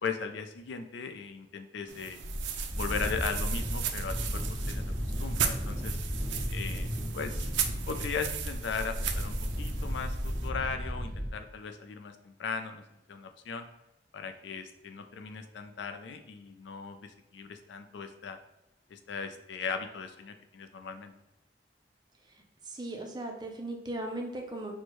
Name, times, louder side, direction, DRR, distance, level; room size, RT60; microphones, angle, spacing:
voice 1, 0.0-2.2 2.7-4.8 5.2-6.0 6.5-7.5 7.9-12.8 13.1-13.7 14.1-18.4 18.9-21.1, left 5 dB, 80° left, 7 dB, 0.4 m, -38 dB
sound 1, 1.9-10.5, right 8 dB, 85° right, 0.4 m, -37 dB
sound 2, 2.2-11.3, equal, 20° left, 0.8 m, -34 dB
voice 2, 22.7-24.8, right 1 dB, 25° right, 3 dB, 0.4 m, -37 dB
4.4 x 2.1 x 2.9 m, 0.91 s
head